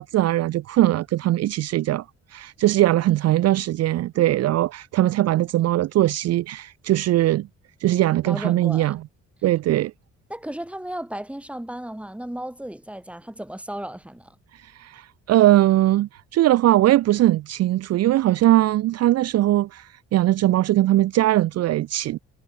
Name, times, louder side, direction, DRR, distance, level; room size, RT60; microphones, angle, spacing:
voice 1, 0.0-2.0 2.3-7.5 7.8-9.0 9.4-9.9 14.8-22.2, right 15 dB, 60° right, 0.4 m, -20 dB
voice 2, 8.3-9.0 10.3-14.4, right 1 dB, 5° right, 2.1 m, -34 dB
cardioid pair, 90°, 30 cm